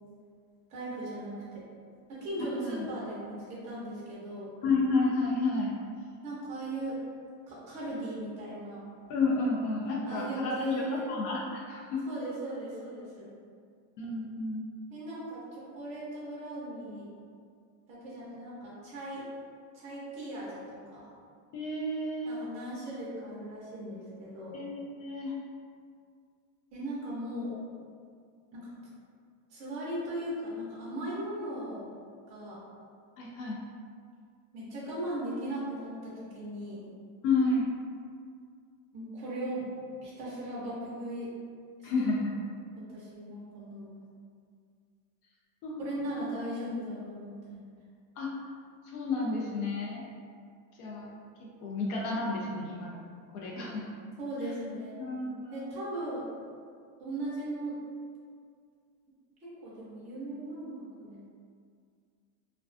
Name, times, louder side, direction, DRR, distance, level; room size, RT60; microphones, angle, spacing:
voice 1, 0.7-1.6 2.1-4.5 6.2-7.0 7.5-8.8 10.1-11.1 12.1-13.3 14.9-17.1 17.9-19.3 19.7-21.1 22.2-24.6 26.7-27.6 28.5-28.7 29.5-31.9 32.3-32.6 34.5-36.8 38.9-39.7 40.0-41.3 42.9-43.9 45.8-47.6 54.2-55.0 55.5-56.3 57.0-57.8 59.4-60.7 61.0-61.2, right 1 dB, 15° right, -8 dB, 0.4 m, -38 dB
voice 2, 4.6-5.7 9.1-12.0 14.0-14.6 21.5-22.4 24.5-25.3 33.2-33.6 37.2-37.7 41.8-42.3 45.6-46.2 48.2-48.3 48.8-50.0 50.8-51.1 51.6-53.0 53.3-53.8 55.0-55.8, left 3 dB, 75° left, -3 dB, 0.6 m, -31 dB
2.3 x 2.2 x 2.4 m, 2.1 s
supercardioid pair, 155°, 46 cm